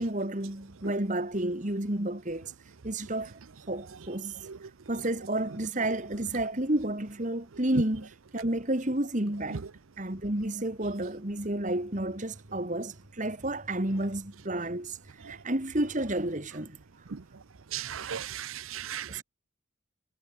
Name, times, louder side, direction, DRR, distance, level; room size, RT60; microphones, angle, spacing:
voice 1, 0.0-2.5 2.8-3.4 3.7-4.4 4.9-9.6 10.0-15.0 15.3-16.8 19.1-19.2, right 1 dB, 35° right, 2.2 m, -31 dB
voice 2, 17.7-19.1, right 10 dB, 80° right, 0.7 m, -36 dB
head